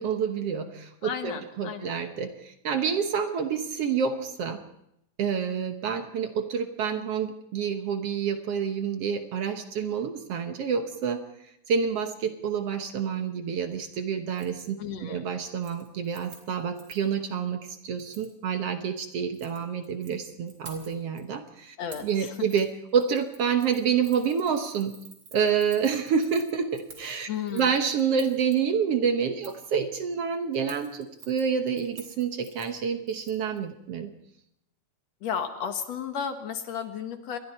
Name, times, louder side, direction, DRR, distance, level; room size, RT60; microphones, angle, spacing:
voice 1, 0.0-4.6 5.2-11.2 11.7-21.8 22.0-25.0 25.3-34.1, right 7 dB, 60° right, 7 dB, 1.9 m, -28 dB
voice 2, 1.0-2.0 14.8-15.3 21.8-22.5 27.3-27.7 35.2-37.4, left 8 dB, 65° left, 7 dB, 2.5 m, -33 dB
Keys jangling, 14.3-14.7 15.0-15.3 15.6-17.1 18.0-18.3 19.2-20.1 20.5-21.2 21.9-22.2 22.5-22.7 23.0-28.6 29.4-29.7 30.5-33.6 33.9-34.0, right 3 dB, 45° right, 4.2 m, -50 dB
28.0 x 21.5 x 4.3 m, 0.80 s
omnidirectional pair, 3.4 m